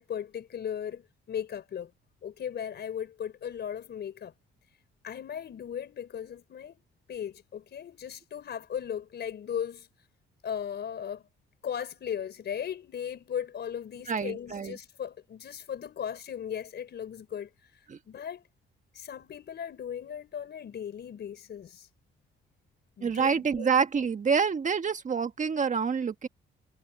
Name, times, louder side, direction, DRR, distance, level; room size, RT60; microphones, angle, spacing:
voice 1, 0.0-1.9 2.2-4.3 5.0-6.8 7.1-9.9 10.4-11.2 11.6-18.4 18.9-21.9 23.0-23.7, left 8 dB, 60° left, 4.4 m, -37 dB
voice 2, 14.1-14.8 17.9-18.0 23.0-26.3, right 6 dB, 40° right, 1.6 m, -27 dB
cardioid pair, 90°, 20 cm